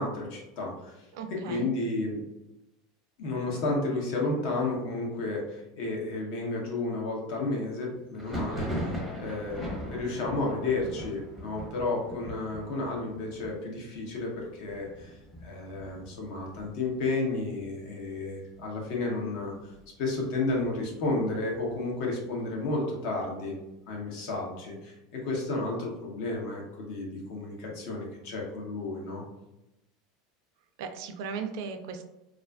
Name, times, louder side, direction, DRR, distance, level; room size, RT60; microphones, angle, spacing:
voice 1, 0.0-2.2 3.2-19.7 20.0-23.5 23.9-29.2, left 2 dB, 60° left, -1 dB, 0.7 m, -32 dB
voice 2, 1.1-1.7 30.8-32.0, right 5 dB, 65° right, 6 dB, 0.3 m, -37 dB
Thunder, 8.1-17.7 17.9-18.6 18.9-19.9 20.3-22.0, equal, 5° left, 0.7 m, -40 dB
2.4 x 2.3 x 2.2 m, 0.94 s
supercardioid pair, 145°, 2 cm